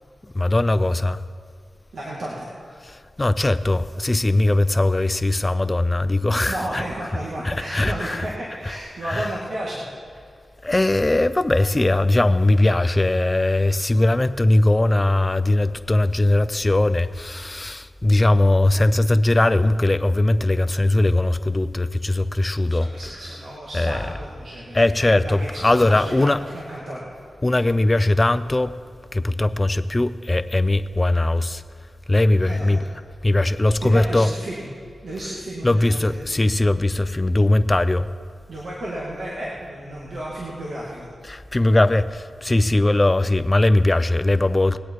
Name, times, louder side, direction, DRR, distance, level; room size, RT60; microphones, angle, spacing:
voice 1, 0.2-1.2 2.8-6.8 7.4-8.2 9.1-9.3 10.6-22.9 23.7-24.1 24.7-26.4 27.4-28.7 29.1-31.6 32.1-32.8 33.2-34.3 35.6-38.1 41.3-44.8, left 2 dB, 25° left, 13 dB, 0.5 m, -20 dB
voice 2, 1.9-2.5 6.5-9.8 22.7-27.0 32.5-32.8 33.8-34.7 35.0-36.3 38.5-41.1, right 1 dB, 70° right, -6 dB, 2.3 m, -33 dB
20.5 x 8.6 x 4.8 m, 2.1 s
cardioid pair, 65°, 0 cm